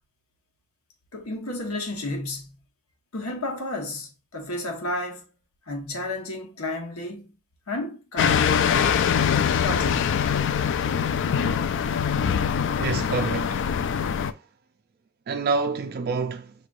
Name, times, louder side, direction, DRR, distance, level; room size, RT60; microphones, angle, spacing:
voice 1, 1.1-2.5 3.1-5.3 5.7-7.3 7.7-8.8 9.6-10.3, left 2 dB, 85° left, 1.2 m, -32 dB
sound 1, 8.2-14.3, left 7 dB, 60° left, 0.3 m, -23 dB
voice 2, 12.8-14.4 15.3-16.5, right 4 dB, 45° right, 0.3 m, -28 dB
5.9 x 3.2 x 2.5 m
head